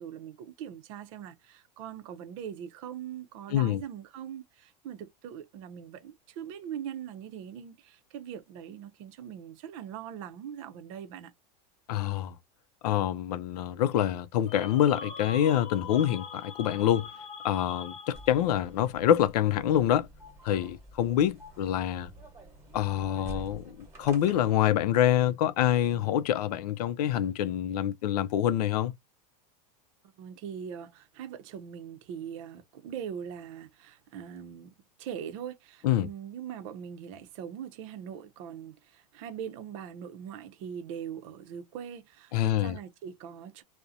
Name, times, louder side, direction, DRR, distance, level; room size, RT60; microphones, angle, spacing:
voice 1, 0.0-11.3 30.2-43.6, right 8 dB, 55° right, 0.6 m, -41 dB
voice 2, 11.9-12.3 12.8-17.1 17.4-20.1 20.4-22.1 22.7-28.9 35.8-36.1 42.3-42.8, left 11 dB, 85° left, 0.4 m, -26 dB
sound 1, 14.5-18.6, left 5 dB, 30° left, 0.5 m, -43 dB
sound 2, 18.1-24.7, right 1 dB, 15° right, 1.2 m, -48 dB
2.7 x 2.1 x 2.3 m
supercardioid pair, 150°, 20 cm